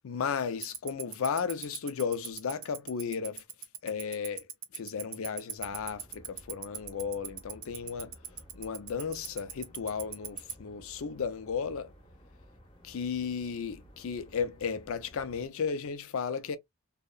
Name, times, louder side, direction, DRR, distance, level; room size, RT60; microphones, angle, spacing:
voice 1, 0.0-3.4 3.8-4.4 4.7-8.1 8.5-11.9 12.8-16.6, left 6 dB, 65° left, 0.4 m, -34 dB
Tick-tock, 0.6-10.5, right 11 dB, 60° right, 0.5 m, -36 dB
sound 1, 5.6-15.5, equal, 25° left, 0.7 m, -55 dB
2.8 x 2.1 x 2.3 m
head